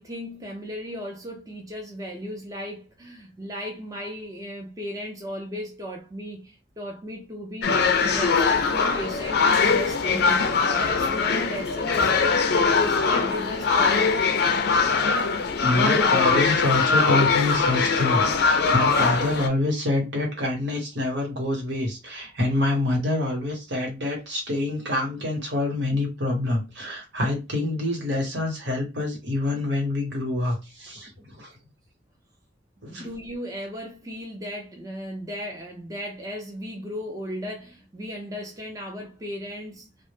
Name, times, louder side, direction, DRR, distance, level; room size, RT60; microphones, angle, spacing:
voice 1, 0.0-12.5 12.8-14.3 32.9-39.9, equal, 20° right, 0.5 m, -36 dB
sound 1, 7.6-19.5, left 4 dB, 60° left, 0.4 m, -21 dB
voice 2, 15.6-31.5 32.8-33.1, left 2 dB, 70° right, 1.0 m, -26 dB
2.0 x 2.0 x 3.1 m
head